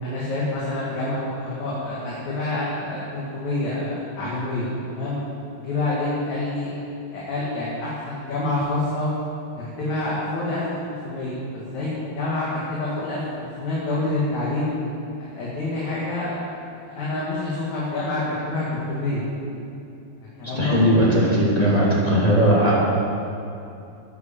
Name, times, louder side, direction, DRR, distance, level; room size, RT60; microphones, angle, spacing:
voice 1, 0.0-5.2 5.6-9.1 9.8-14.7 15.2-16.5 16.9-19.3 20.4-20.9, left 2 dB, 50° left, -7 dB, 2.8 m, -27 dB
voice 2, 20.6-22.7, equal, 10° left, -7 dB, 2.0 m, -18 dB
11.0 x 9.5 x 7.1 m, 2.7 s
omnidirectional pair, 4.7 m